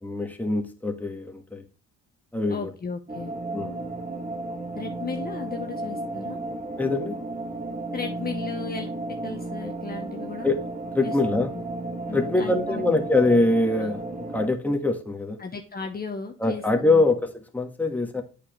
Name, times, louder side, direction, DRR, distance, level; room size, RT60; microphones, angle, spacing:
voice 1, 0.0-1.6 2.3-2.7 3.5-3.8 6.8-7.2 10.4-10.6 10.9-11.5 12.1-14.0 14.3-15.4 16.4-18.2, left 2 dB, 5° left, 1.5 m, -23 dB
voice 2, 2.5-3.3 4.7-6.4 7.9-8.9 9.2-10.5 11.0-11.5 12.1-12.8 15.4-17.0, left 5 dB, 30° left, 1.0 m, -35 dB
sound 1, 3.1-14.5, right 2 dB, 25° right, 1.9 m, -33 dB
8.3 x 5.1 x 3.1 m
cardioid pair, 90°, 30 cm